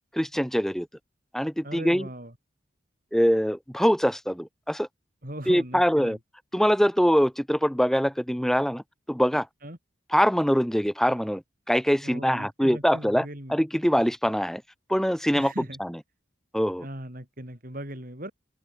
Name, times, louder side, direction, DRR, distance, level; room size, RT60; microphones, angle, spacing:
voice 1, 0.1-0.9 1.3-2.1 3.1-4.9 5.5-6.2 6.5-8.8 9.1-9.5 10.1-14.6 14.9-15.5 15.8-16.0 16.5-16.9, equal, ahead, 4.3 m, -23 dB
voice 2, 1.6-2.3 5.2-6.2 9.6-9.8 12.0-13.6 15.3-15.8 16.8-18.3, right 1 dB, 45° right, 6.8 m, -38 dB
open air
head